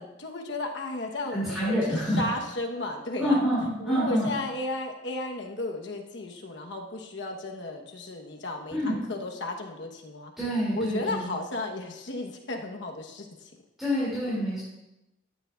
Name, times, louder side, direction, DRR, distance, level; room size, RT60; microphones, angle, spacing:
voice 1, 0.0-3.4 3.8-10.3 10.7-13.5, left 2 dB, 70° left, 2 dB, 1.1 m, -34 dB
voice 2, 1.3-2.3 3.2-4.3 8.7-9.0 10.4-11.3 13.8-14.6, equal, ahead, -9 dB, 2.7 m, -27 dB
13.0 x 9.3 x 2.5 m, 0.91 s
head